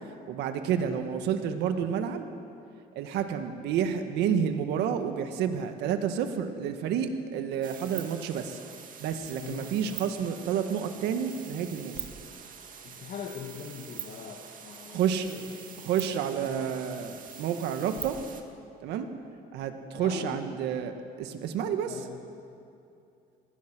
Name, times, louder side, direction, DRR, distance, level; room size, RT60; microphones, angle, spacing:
voice 1, 0.3-2.3 3.0-8.6 9.0-12.1 14.9-15.3 15.8-18.2 18.8-19.1 19.5-22.0, right 8 dB, 85° right, 7 dB, 1.7 m, -30 dB
sound 1, 7.6-18.4, right 8 dB, 55° right, 2.2 m, -44 dB
voice 2, 9.4-9.8 12.8-15.6 16.4-16.7 19.9-20.4 21.9-22.2, left 7 dB, 60° left, 0 dB, 2.2 m, -41 dB
26.5 x 19.5 x 6.2 m, 2.6 s
cardioid pair, 110°, 17 cm